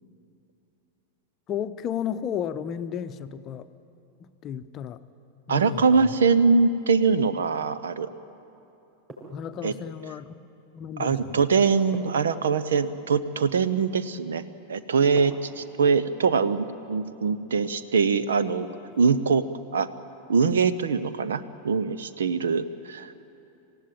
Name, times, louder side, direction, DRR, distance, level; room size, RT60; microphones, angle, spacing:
voice 1, 1.5-3.7 4.2-5.0 5.5-6.1 9.3-10.3 10.7-11.6, left 8 dB, 30° left, 11 dB, 0.8 m, -33 dB
voice 2, 5.5-8.1 9.6-9.7 11.0-14.4 14.7-18.7 19.0-19.5 19.7-19.9 20.3-23.1, right 5 dB, 65° right, 14 dB, 0.8 m, -23 dB
sound 1, 9.1-9.9 11.9-13.0 15.1-15.9 18.5-19.1, right 2 dB, 25° right, 6.7 m, -45 dB
26.5 x 16.0 x 8.8 m, 2.8 s
figure-of-eight pair, 90°, 0 cm